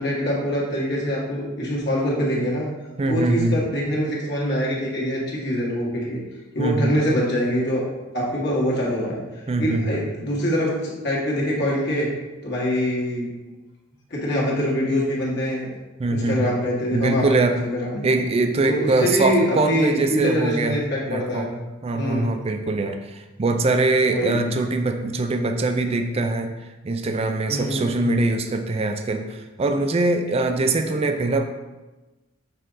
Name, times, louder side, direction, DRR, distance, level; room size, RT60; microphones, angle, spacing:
voice 1, 0.0-2.7 3.1-6.2 6.5-9.2 9.6-12.1 12.4-13.3 14.1-15.7 16.1-18.0 18.7-21.5 21.9-22.3 24.1-24.5 27.5-27.9, equal, 55° left, -5 dB, 1.6 m, -24 dB
voice 2, 3.0-3.6 6.6-7.1 9.5-10.0 16.0-16.6 16.9-17.6 18.0-20.8 21.1-26.5 26.8-31.4, right 2 dB, 30° right, 6 dB, 0.4 m, -23 dB
6.5 x 3.7 x 3.9 m, 1.1 s
head